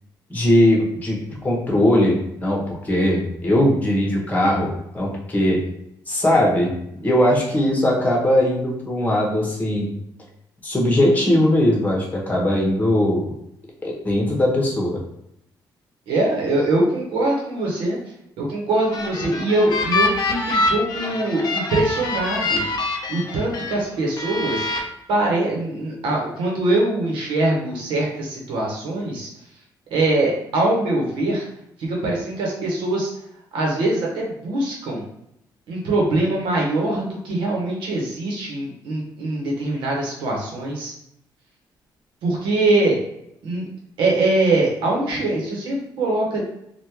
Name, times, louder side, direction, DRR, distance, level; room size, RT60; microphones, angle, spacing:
voice 1, 0.3-1.2 1.4-5.6 6.1-6.7 7.0-9.9 10.6-13.3 13.8-15.0, left 1 dB, 20° left, -2 dB, 1.3 m, -19 dB
voice 2, 16.1-18.0 18.4-22.6 23.1-24.7 25.1-29.3 29.9-31.5 31.8-33.1 33.5-35.0 35.7-40.9 42.2-43.0 43.4-43.7 44.0-46.4, right 2 dB, 90° right, -2 dB, 1.1 m, -22 dB
sound 1, 18.7-23.8 24.2-24.8, left 2 dB, 50° left, 0.7 m, -25 dB
3.4 x 2.5 x 3.0 m, 0.77 s
cardioid pair, 95°, 8 cm